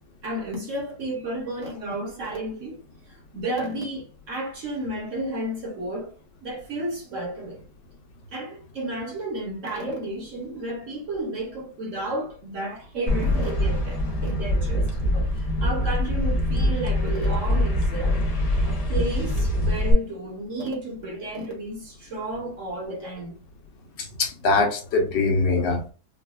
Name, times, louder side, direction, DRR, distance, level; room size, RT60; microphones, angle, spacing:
voice 1, 0.2-2.8 3.1-6.1 6.4-7.6 8.3-14.9 15.3-18.3 18.6-23.4, right 1 dB, 50° right, 1.2 m, -32 dB
sound 1, 13.1-19.9, left 1 dB, 45° left, 0.4 m, -24 dB
voice 2, 24.0-25.9, left 3 dB, 85° left, 1.6 m, -23 dB
4.9 x 2.2 x 2.3 m
omnidirectional pair, 1.9 m